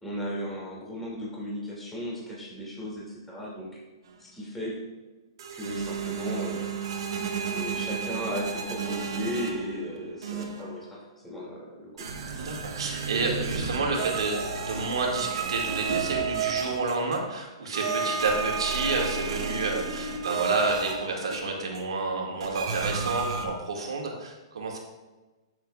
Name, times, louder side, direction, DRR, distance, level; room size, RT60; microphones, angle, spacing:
voice 1, 0.0-3.8 4.2-4.8 5.5-6.7 7.5-11.0 11.2-12.0, equal, 5° left, -6 dB, 2.6 m, -35 dB
sound 1, 5.4-9.9 10.2-10.8 12.0-17.3 17.7-21.8 22.4-23.5, right 6 dB, 65° right, 1.4 m, -32 dB
voice 2, 12.4-24.8, right 3 dB, 85° right, 0 dB, 2.1 m, -30 dB
12.0 x 6.8 x 2.5 m, 1.2 s
hypercardioid pair, 140°, 3 cm